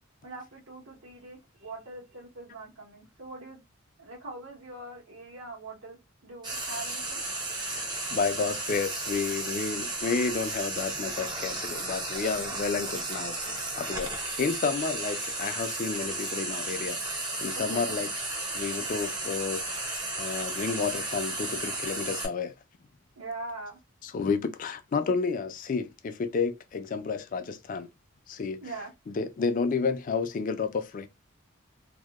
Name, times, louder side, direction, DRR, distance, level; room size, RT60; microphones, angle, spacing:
voice 1, 0.2-3.6 4.0-6.0 6.2-7.2 17.7-18.0 23.1-23.8 28.6-28.9, right 2 dB, 85° right, 1.3 m, -42 dB
Frying (food), 6.4-22.3, right 2 dB, 20° right, 0.5 m, -34 dB
voice 2, 7.7-18.1 18.5-19.6 20.2-22.5 24.0-27.9 28.3-28.6 29.2-31.1, left 5 dB, 40° left, 0.3 m, -31 dB
2.7 x 2.1 x 2.2 m
head